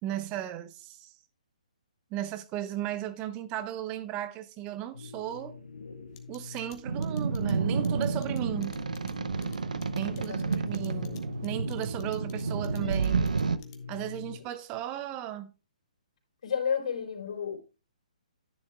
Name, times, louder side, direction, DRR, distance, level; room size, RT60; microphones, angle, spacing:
voice 1, 0.0-1.1 2.1-5.6 6.3-8.8 10.0-13.3 13.9-15.5, right 12 dB, 25° right, 0.8 m, -36 dB
sound 1, 4.9-14.4, left 5 dB, 85° left, 1.3 m, -43 dB
sound 2, 6.2-14.1, left 12 dB, 35° left, 1.4 m, -54 dB
sound 3, 6.8-13.6, right 5 dB, 75° right, 0.7 m, -30 dB
voice 2, 10.2-10.9 16.4-17.6, left 7 dB, 60° left, 4.2 m, -32 dB
10.5 x 9.9 x 2.3 m
figure-of-eight pair, 135°, 4 cm